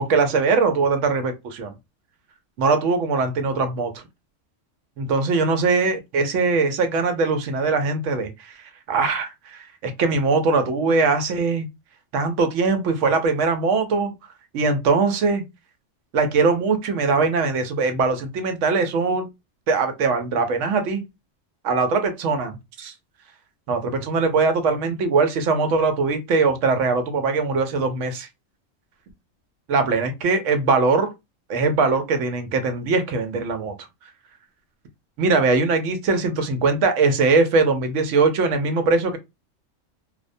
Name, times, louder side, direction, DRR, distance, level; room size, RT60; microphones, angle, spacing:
voice 1, 0.0-1.7 2.6-4.0 5.0-11.7 12.1-14.1 14.5-15.4 16.1-19.3 19.7-21.0 21.6-22.9 23.7-28.3 29.7-31.1 31.5-33.8 35.2-39.2, right 4 dB, 80° right, 0.9 m, -21 dB
2.3 x 2.1 x 2.5 m
omnidirectional pair, 1.3 m